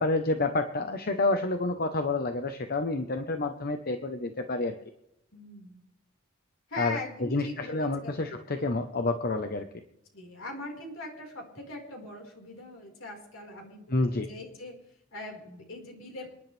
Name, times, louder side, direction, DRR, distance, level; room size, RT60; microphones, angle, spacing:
voice 1, 0.0-4.8 6.8-7.0 7.3-9.7 13.9-14.3, left 2 dB, 50° left, 7 dB, 1.0 m, -29 dB
voice 2, 5.3-5.8 6.7-8.3 10.1-14.8 15.1-16.3, left 2 dB, 90° left, 0 dB, 4.8 m, -41 dB
28.5 x 11.0 x 3.4 m, 0.84 s
head